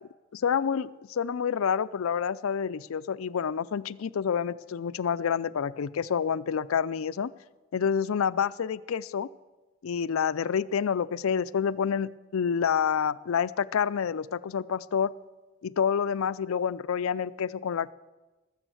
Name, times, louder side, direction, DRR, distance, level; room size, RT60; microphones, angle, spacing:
voice 1, 0.3-7.3 7.7-9.3 9.8-15.1 15.6-17.9, left 7 dB, 75° left, 17 dB, 0.4 m, -28 dB
19.5 x 7.1 x 7.8 m, 1.2 s
head